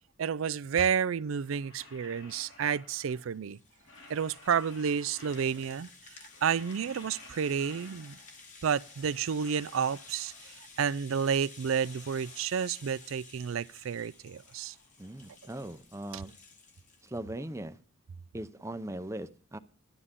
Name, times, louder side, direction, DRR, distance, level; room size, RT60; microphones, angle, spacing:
voice 1, 0.2-3.6 4.1-5.9 6.4-8.2 8.6-14.7 16.1-16.2, right 7 dB, 80° right, 0.4 m, -30 dB
sound 1, 1.2-3.4 3.7-5.9 6.2-8.4 8.7-10.8 11.2-13.2 13.5-15.7, left 2 dB, 75° left, 4.4 m, -55 dB
Rattle (instrument), 3.0-17.2, left 4 dB, 40° left, 1.8 m, -53 dB
voice 2, 15.0-16.3 17.0-17.8 18.3-19.6, right 1 dB, 15° right, 0.6 m, -39 dB
12.0 x 11.0 x 3.7 m
head